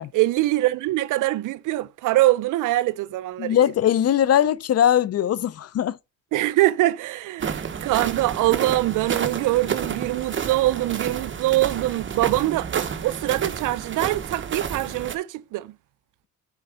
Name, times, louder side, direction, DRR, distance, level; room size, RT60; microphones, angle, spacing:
voice 1, 0.1-3.6 6.3-15.8, right 17 dB, 85° right, 0.6 m, -23 dB
voice 2, 3.4-6.0, left 10 dB, 55° left, 0.6 m, -20 dB
sound 1, 7.4-15.1, right 7 dB, 40° right, 1.1 m, -30 dB
9.6 x 4.5 x 4.9 m
cardioid pair, 90°, 30 cm